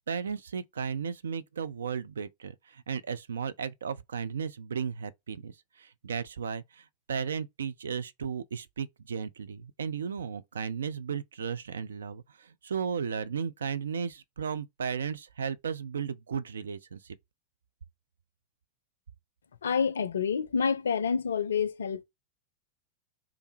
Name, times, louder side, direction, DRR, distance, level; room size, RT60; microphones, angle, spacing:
voice 1, 0.1-17.2, right 6 dB, 65° right, 0.3 m, -35 dB
voice 2, 19.6-22.0, left 6 dB, 70° left, 0.4 m, -28 dB
3.3 x 2.5 x 3.1 m
figure-of-eight pair, 90°, 0 cm